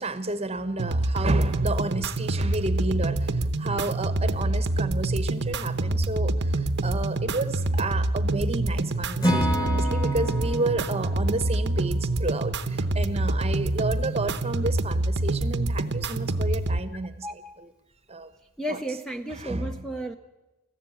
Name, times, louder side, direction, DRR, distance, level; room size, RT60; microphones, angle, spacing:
voice 1, 0.0-17.7 18.1-18.3 18.7-18.8 19.3-19.8, right 2 dB, 25° right, 12 dB, 1.1 m, -31 dB
sound 1, 0.8-16.8, right 2 dB, 50° right, 0.9 m, -26 dB
Acoustic guitar / Strum, 9.2-13.3, equal, 15° left, 1.9 m, -31 dB
voice 2, 17.2-17.6 18.6-20.1, right 1 dB, ahead, 6 dB, 0.7 m, -33 dB
21.0 x 15.0 x 8.6 m, 1.0 s
head